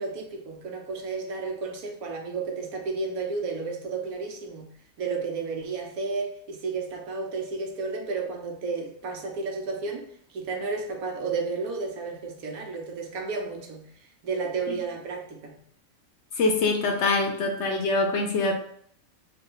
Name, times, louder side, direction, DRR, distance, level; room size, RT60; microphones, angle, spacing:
voice 1, 0.0-15.6, right 4 dB, 80° right, 1 dB, 1.2 m, -32 dB
voice 2, 16.4-18.5, left 3 dB, 65° left, 2 dB, 0.8 m, -24 dB
3.4 x 2.5 x 3.8 m, 0.65 s
omnidirectional pair, 1.5 m